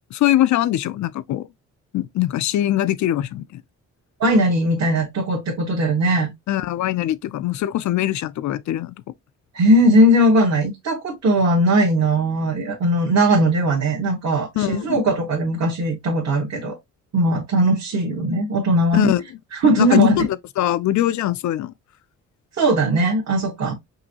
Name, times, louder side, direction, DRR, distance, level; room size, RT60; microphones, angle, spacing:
voice 1, 0.0-1.5 1.9-3.6 6.5-8.9 14.6-15.0 18.9-19.2 19.8-20.3 20.6-21.7, left 13 dB, 65° left, 0.5 m, -22 dB
voice 2, 4.2-6.3 9.5-16.8 17.1-19.1 19.5-20.3 22.6-23.7, right 1 dB, 55° right, 1.5 m, -19 dB
5.4 x 2.7 x 2.8 m
cardioid pair, 100°, 31 cm